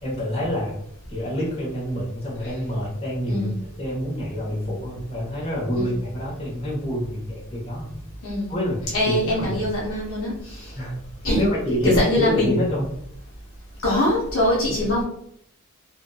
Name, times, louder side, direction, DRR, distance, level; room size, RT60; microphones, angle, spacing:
voice 1, 0.0-0.7 1.1-3.5 3.8-8.0 8.5-9.5 10.7-11.0 11.4-12.9 14.7-14.8, equal, 25° left, -6 dB, 1.0 m, -27 dB
voice 2, 3.3-3.6 5.8-6.0 8.2-8.6 8.9-10.7 11.2-11.4 11.8-12.6 13.8-15.0, left 1 dB, 60° left, -5 dB, 0.7 m, -23 dB
2.6 x 2.5 x 2.3 m, 0.70 s
head